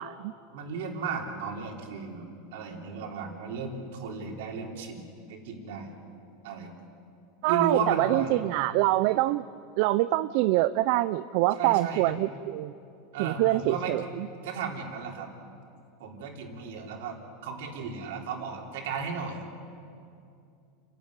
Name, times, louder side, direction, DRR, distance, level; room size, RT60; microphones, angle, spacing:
voice 1, 0.0-0.3 7.4-9.4 9.8-12.7 13.2-14.0, right 17 dB, 60° right, 13 dB, 0.5 m, -25 dB
voice 2, 0.5-2.3 2.5-5.9 6.4-6.8 7.5-8.6 11.5-12.2 13.1-13.9 14.4-15.3 16.0-19.4, right 5 dB, 75° right, 0 dB, 3.7 m, -34 dB
29.5 x 11.0 x 9.7 m, 2.5 s
supercardioid pair, 135°, 0 cm